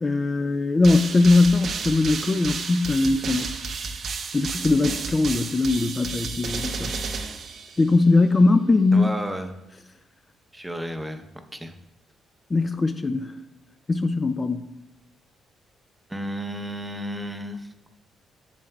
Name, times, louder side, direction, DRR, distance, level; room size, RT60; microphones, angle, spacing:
voice 1, 0.0-3.6 4.3-6.9 7.8-9.1 12.5-13.4 13.9-14.7, left 3 dB, 25° left, 9 dB, 0.3 m, -20 dB
sound 1, 0.8-8.1, right 5 dB, 55° right, 0.6 m, -32 dB
voice 2, 8.9-9.5 10.5-11.3 11.5-11.7 16.1-17.7, equal, 10° right, 7 dB, 0.7 m, -32 dB
7.6 x 7.2 x 2.3 m, 0.92 s
cardioid pair, 90°, 0 cm